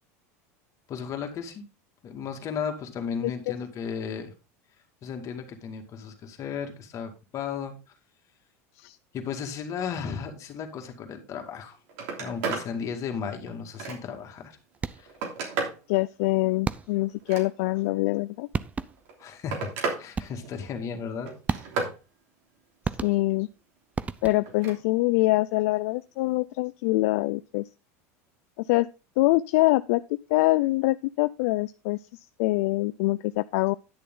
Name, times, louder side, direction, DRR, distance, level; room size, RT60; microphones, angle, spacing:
voice 1, 0.9-1.7 2.0-4.3 5.0-7.8 9.1-11.8 12.2-14.6 15.0-15.1 19.2-19.7 20.0-21.3, left 6 dB, 40° left, 2.2 m, -34 dB
voice 2, 3.2-3.6 8.8-9.0 15.9-18.5 23.0-23.5 24.2-27.7 28.6-28.9 29.2-30.0 30.3-33.7, left 20 dB, 70° left, 0.3 m, -24 dB
Telephone, 11.5-11.6 11.9-12.7 13.2-14.3 14.8-15.8 17.1-17.9 18.9-20.0 20.4-20.8 21.3-22.0 24.4-24.8 26.2-26.3, right 4 dB, 70° right, 3.1 m, -33 dB
sound 1, 14.7-15.2 16.6-17.2 18.2-18.3 18.5-19.2 20.2-20.6 21.5-22.0 22.8-23.5 24.0-24.6, right 5 dB, 15° right, 0.5 m, -33 dB
10.5 x 6.8 x 3.9 m
supercardioid pair, 115°, 8 cm